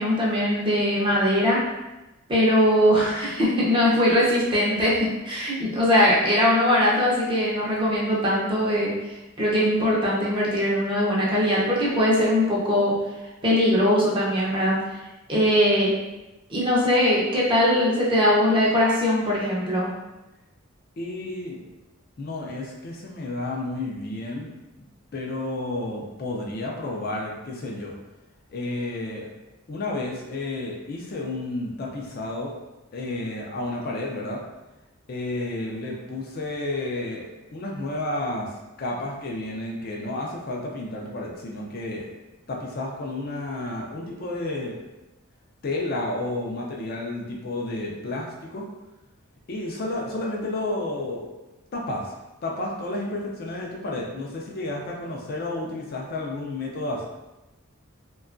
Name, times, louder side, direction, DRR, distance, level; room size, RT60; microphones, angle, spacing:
voice 1, 0.0-1.6 2.3-8.9 9.4-13.0 13.4-14.8 15.3-15.9 16.5-19.9, left 1 dB, 25° right, -6 dB, 0.6 m, -21 dB
voice 2, 21.0-21.6 22.2-24.5 25.1-28.0 28.5-29.3 29.7-32.5 32.9-34.4 35.1-42.1 42.5-44.8 45.6-48.7 49.5-51.3 51.7-52.1 52.4-57.1, left 2 dB, 45° left, -1 dB, 0.4 m, -31 dB
2.7 x 2.2 x 2.5 m, 1.0 s
head